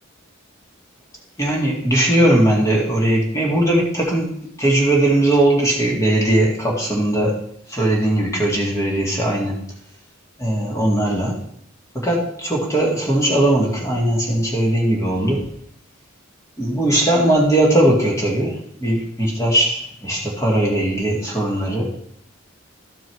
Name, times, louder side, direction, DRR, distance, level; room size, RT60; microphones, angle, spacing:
voice 1, 1.4-4.3 4.6-7.4 7.7-9.6 10.4-11.3 11.9-15.5 16.6-21.9, right 1 dB, 15° left, -2 dB, 2.0 m, -19 dB
12.5 x 4.7 x 4.6 m, 0.68 s
head